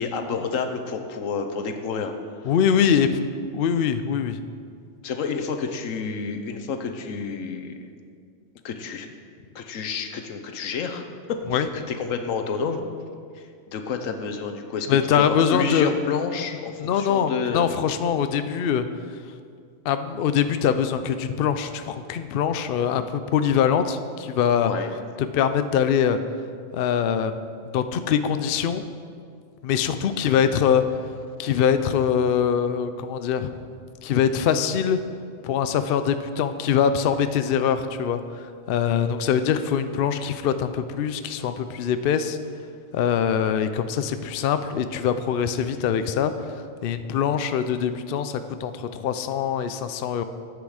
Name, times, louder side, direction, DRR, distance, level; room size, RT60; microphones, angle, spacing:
voice 1, 0.0-2.1 2.4-2.5 3.0-3.1 5.0-7.7 8.6-9.1 9.5-12.8 13.3-17.7 24.6-24.9, left 5 dB, 80° left, 6 dB, 1.2 m, -29 dB
voice 2, 2.5-3.1 3.4-4.4 11.5-11.7 14.9-15.9 16.8-18.9 19.8-24.7 25.2-26.2 26.7-27.4 27.7-28.8 29.6-30.8 31.4-33.5 34.0-35.0 35.4-42.4 42.9-46.3 46.8-50.2, left 8 dB, 65° left, 10 dB, 0.6 m, -23 dB
10.5 x 8.0 x 4.9 m, 2.2 s
omnidirectional pair, 1.4 m